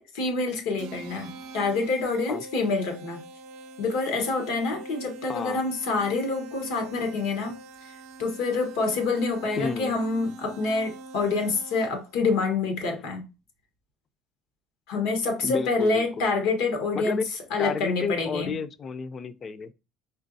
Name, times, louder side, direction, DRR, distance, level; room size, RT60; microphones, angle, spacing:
voice 1, 0.0-3.2 3.8-7.5 7.8-7.9 8.2-13.2 14.9-17.2 17.5-18.5, left 3 dB, 90° left, 1.2 m, -27 dB
sound 1, 0.8-12.2, right 2 dB, 85° right, 0.5 m, -43 dB
voice 2, 5.3-5.6 9.6-9.9 15.4-16.3 16.9-17.3 17.6-19.7, left 5 dB, 30° left, 0.3 m, -31 dB
4.3 x 3.0 x 2.6 m
cardioid pair, 145°, 0 cm